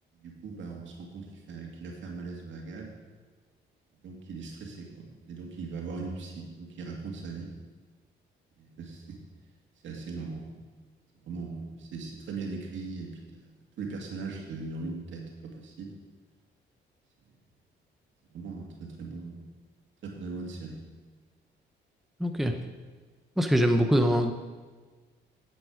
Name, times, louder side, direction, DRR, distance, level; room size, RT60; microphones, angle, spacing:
voice 1, 0.2-2.9 4.0-7.5 8.6-9.2 9.8-10.6 11.2-16.0 18.3-19.5 20.0-20.8, right 4 dB, 70° right, 0 dB, 2.3 m, -39 dB
voice 2, 22.2-22.5 23.4-24.3, equal, ahead, 5 dB, 0.8 m, -23 dB
9.9 x 7.8 x 5.1 m, 1.4 s
cardioid pair, 90°, 20 cm